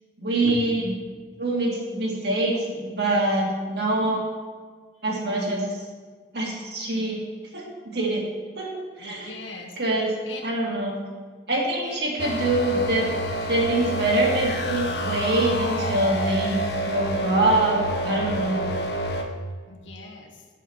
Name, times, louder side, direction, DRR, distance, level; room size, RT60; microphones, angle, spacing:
voice 1, 0.2-0.9 1.4-4.3 5.0-5.8 6.3-7.2 7.5-8.2 8.6-8.7 9.0-9.3 9.8-10.1 10.4-11.0 11.5-13.1 13.5-16.6 16.8-18.7, right 2 dB, 60° right, -2 dB, 2.2 m, -24 dB
voice 2, 9.0-9.8 10.2-10.5 11.8-12.1 19.7-20.4, left 3 dB, 90° left, 1 dB, 1.5 m, -39 dB
sound 1, 12.2-19.2, right 1 dB, 60° left, 0.9 m, -28 dB
7.3 x 5.9 x 7.0 m, 1.5 s
head